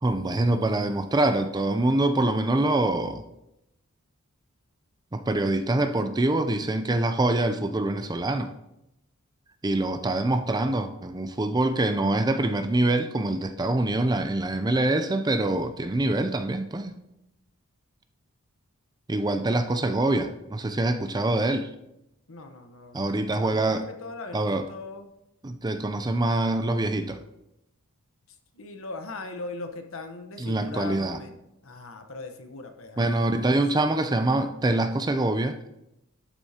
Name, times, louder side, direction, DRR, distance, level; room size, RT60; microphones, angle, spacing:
voice 1, 0.0-3.2 5.1-8.5 9.6-17.0 19.1-21.7 22.9-23.8 24.3-24.6 25.4-27.2 30.4-31.2 33.0-35.6, right 2 dB, 20° right, 8 dB, 0.5 m, -25 dB
voice 2, 22.3-23.1 23.4-25.1 28.3-31.4 31.6-33.7, left 3 dB, 60° left, 6 dB, 1.1 m, -40 dB
11.5 x 8.0 x 2.9 m, 0.85 s
head